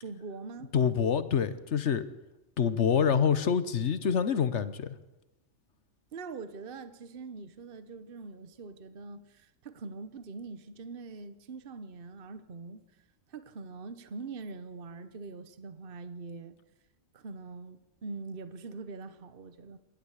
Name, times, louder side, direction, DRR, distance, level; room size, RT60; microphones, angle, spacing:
voice 1, 0.0-0.7 6.1-12.9 13.3-16.5 17.1-19.8, right 4 dB, 45° right, 1.2 m, -43 dB
voice 2, 0.7-2.0 2.6-4.9, left 7 dB, 60° left, 1.2 m, -26 dB
27.5 x 11.5 x 8.2 m
omnidirectional pair, 1.4 m